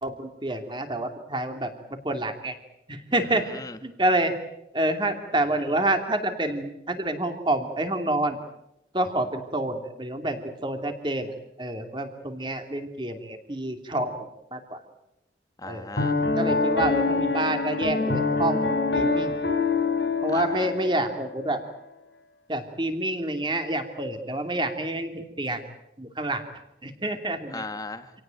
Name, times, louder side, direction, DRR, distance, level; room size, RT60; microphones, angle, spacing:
voice 1, 0.0-1.7 2.0-2.5 2.9-3.5 3.8-4.3 4.7-8.4 8.9-11.3 11.6-14.1 14.5-14.8 15.6-15.8 16.4-18.6 18.9-19.4 20.2-21.6 22.5-25.6 26.0-26.4 26.8-27.6, right 1 dB, 25° right, 6 dB, 2.7 m, -28 dB
voice 2, 3.2-3.8 15.6-16.2 20.3-20.7 27.5-28.1, left 3 dB, 20° left, 9 dB, 1.4 m, -38 dB
Piano, 16.0-21.3, left 3 dB, 85° left, 5.3 m, -25 dB
27.5 x 18.0 x 9.1 m, 0.85 s
head